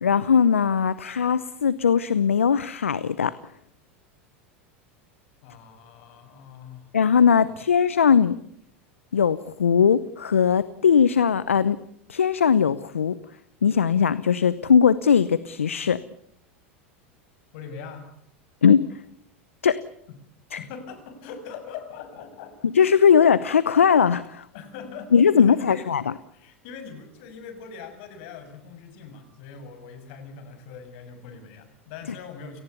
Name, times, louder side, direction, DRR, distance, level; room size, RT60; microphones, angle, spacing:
voice 1, 0.0-3.3 6.9-8.4 9.1-11.8 12.1-13.2 13.6-16.0 18.6-18.9 19.6-19.8 20.5-20.6 22.6-24.4 25.1-26.0, left 7 dB, 85° left, 17 dB, 0.8 m, -19 dB
voice 2, 5.4-6.9 7.4-7.6 17.5-18.1 20.1-20.2 20.6-22.7 24.5-32.6, left 6 dB, 60° left, 8 dB, 6.7 m, -41 dB
30.0 x 18.5 x 6.9 m, 0.70 s
hypercardioid pair, 90°, 7 cm